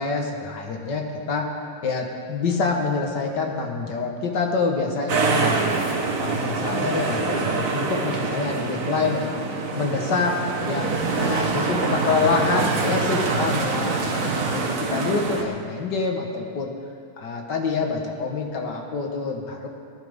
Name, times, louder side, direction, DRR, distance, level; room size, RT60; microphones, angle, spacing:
voice 1, 0.0-1.5 1.8-5.8 6.2-9.4 9.7-10.3 10.6-10.9 11.2-16.7 17.2-19.7, left 4 dB, 55° left, 2 dB, 1.9 m, -26 dB
sound 1, 5.1-15.4, right 4 dB, 45° right, 1.2 m, -25 dB
19.5 x 11.5 x 3.7 m, 2.3 s
omnidirectional pair, 2.4 m